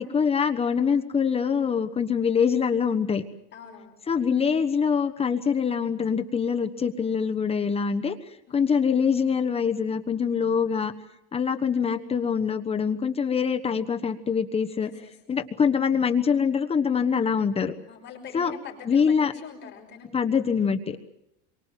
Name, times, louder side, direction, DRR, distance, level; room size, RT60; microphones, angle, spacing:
voice 1, 0.0-3.2 4.1-8.1 8.5-10.9 11.3-14.9 15.3-17.8 18.3-18.5 18.9-19.3 20.1-21.0, left 6 dB, 20° left, 6 dB, 1.2 m, -24 dB
voice 2, 3.5-3.9 8.5-8.7 14.8-15.1 17.9-20.1, left 6 dB, 35° left, 1 dB, 5.7 m, -43 dB
28.5 x 23.5 x 7.6 m, 0.85 s
cardioid pair, 145°, 31 cm